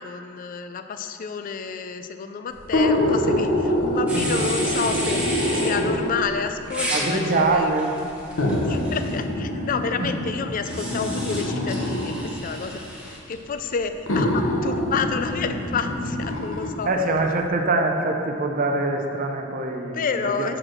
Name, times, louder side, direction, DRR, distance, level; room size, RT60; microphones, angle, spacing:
voice 1, 0.0-7.8 8.6-16.9 19.9-20.6, left 5 dB, 45° left, 8 dB, 0.4 m, -30 dB
sound 1, 2.6-6.3 7.2-7.3 8.4-12.3 13.3-13.4 14.1-16.7 17.2-17.3, left 1 dB, 85° left, 1.0 m, -25 dB
sound 2, 4.1-5.7 6.7-9.1 10.6-13.2, right 1 dB, 5° right, 1.2 m, -32 dB
voice 2, 6.9-7.9 10.0-10.1 16.8-20.5, right 2 dB, 45° right, 3 dB, 0.6 m, -24 dB
6.4 x 4.5 x 6.4 m, 2.5 s
head